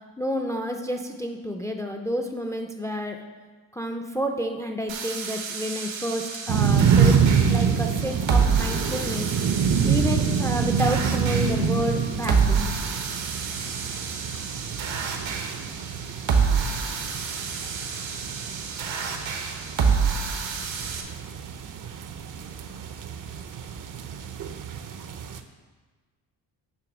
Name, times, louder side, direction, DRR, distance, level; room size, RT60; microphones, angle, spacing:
voice 1, 0.2-3.2 3.7-7.1 7.5-9.3 9.8-12.7, equal, 10° left, 4 dB, 0.3 m, -30 dB
sound 1, 4.9-21.0, right 5 dB, 85° right, 1.1 m, -28 dB
sound 2, 6.5-25.4, right 6 dB, 45° right, 0.5 m, -27 dB
9.1 x 3.4 x 6.0 m, 1.4 s
wide cardioid pair, 140°, 44 cm